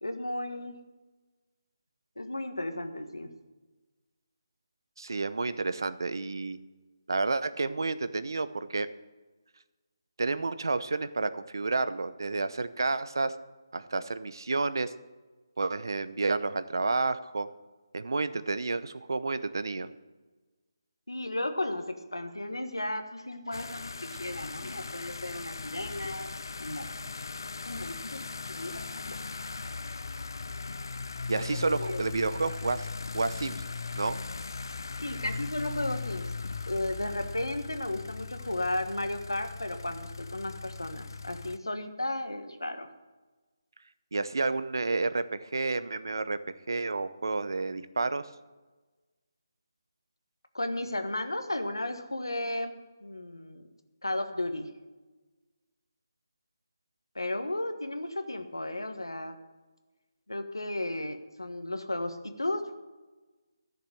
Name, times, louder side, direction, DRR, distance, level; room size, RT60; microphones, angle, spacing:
voice 1, 0.0-0.8 2.2-3.3 21.1-26.3 26.6-26.9 27.6-29.2 31.5-32.1 35.0-36.3 36.7-42.9 50.5-53.7 54.0-54.7 57.1-59.4 60.3-62.8, left 1 dB, 90° left, 8 dB, 1.4 m, -34 dB
voice 2, 5.0-6.6 7.1-8.9 10.2-13.3 13.7-14.9 15.6-17.5 17.9-19.9 31.3-32.9 33.1-33.6 34.0-34.2 44.1-46.4 46.7-48.3, right 3 dB, 65° right, 13 dB, 0.8 m, -30 dB
sound 1, 23.5-41.6, left 4 dB, 65° left, 0.6 m, -39 dB
13.0 x 6.9 x 7.7 m, 1.2 s
figure-of-eight pair, 155°, 2 cm